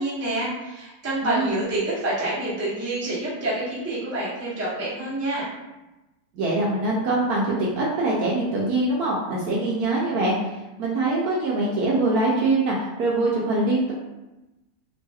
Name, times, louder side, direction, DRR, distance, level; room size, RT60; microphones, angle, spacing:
voice 1, 0.0-5.5, right 1 dB, 25° right, -8 dB, 0.3 m, -27 dB
voice 2, 1.2-1.6 6.3-10.5 10.8-13.9, right 2 dB, 70° right, -5 dB, 0.9 m, -23 dB
3.0 x 2.7 x 2.3 m, 1.0 s
omnidirectional pair, 2.0 m